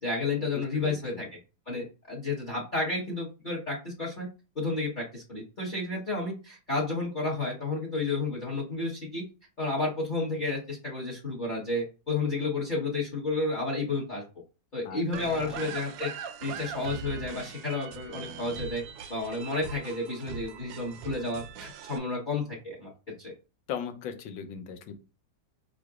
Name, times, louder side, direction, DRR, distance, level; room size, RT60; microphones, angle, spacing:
voice 1, 0.0-1.3 1.7-4.3 4.5-9.2 9.6-14.2 14.7-16.1 16.4-18.8 19.1-22.9 23.2-23.3, left 3 dB, 30° left, -3 dB, 1.0 m, -31 dB
voice 2, 0.5-1.2 14.8-15.6 23.7-24.9, left 8 dB, 85° left, 8 dB, 1.4 m, -39 dB
sound 1, 15.1-22.0, right 6 dB, 90° right, 1.4 m, -41 dB
5.1 x 3.8 x 2.4 m, 0.32 s
omnidirectional pair, 2.0 m